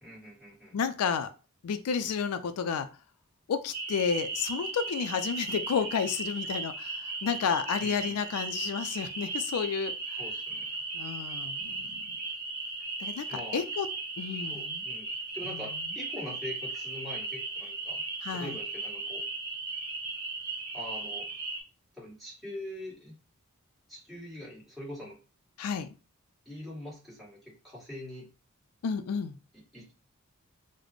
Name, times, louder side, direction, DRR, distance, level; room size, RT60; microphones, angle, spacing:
voice 1, 0.0-0.8 7.8-8.2 10.2-10.7 13.3-13.6 14.5-18.0 18.3-19.2 20.7-21.3 21.9-23.1 23.9-25.2 26.5-28.3 29.7-29.9, left 1 dB, ahead, -6 dB, 1.7 m, -43 dB
voice 2, 0.7-1.3 1.6-2.9 3.5-10.2 10.9-12.2 13.0-13.9 14.2-14.8 15.5-15.9 18.2-18.6 25.6-25.9 28.8-29.4, left 6 dB, 85° left, 10 dB, 0.4 m, -31 dB
sound 1, 3.7-21.6, right 3 dB, 45° right, 1.0 m, -36 dB
4.0 x 2.1 x 3.0 m, 0.32 s
head